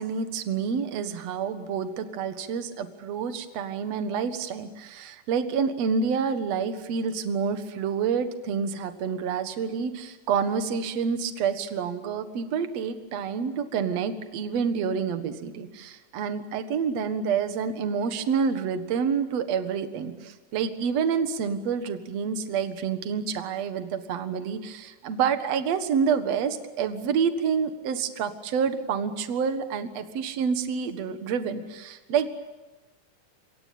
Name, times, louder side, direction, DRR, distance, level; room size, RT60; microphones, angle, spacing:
voice 1, 0.0-32.4, right 6 dB, 55° right, 9 dB, 2.5 m, -28 dB
26.5 x 24.5 x 8.7 m, 1.1 s
omnidirectional pair, 3.7 m